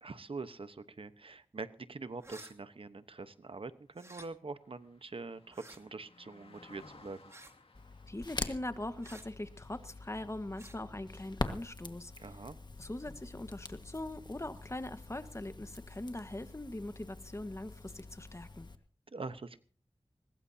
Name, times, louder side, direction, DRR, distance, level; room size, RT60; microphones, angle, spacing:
voice 1, 0.0-7.2 12.2-12.6 19.1-19.6, right 3 dB, 70° right, 12 dB, 1.1 m, -44 dB
sound 1, 2.2-2.5 3.9-4.3 5.5-5.8 7.3-7.6 9.0-9.3 10.5-10.8, right 1 dB, 30° right, 2.5 m, -52 dB
Car passing by, 3.2-12.7 13.1-13.3, left 3 dB, 80° left, 2.4 m, -62 dB
Crackle, 7.7-18.8, left 2 dB, 50° left, 1.6 m, -45 dB
voice 2, 8.1-12.1 12.8-18.7, left 1 dB, 30° left, 10 dB, 1.4 m, -41 dB
21.5 x 20.0 x 2.8 m, 0.39 s
wide cardioid pair, 55°, 10 cm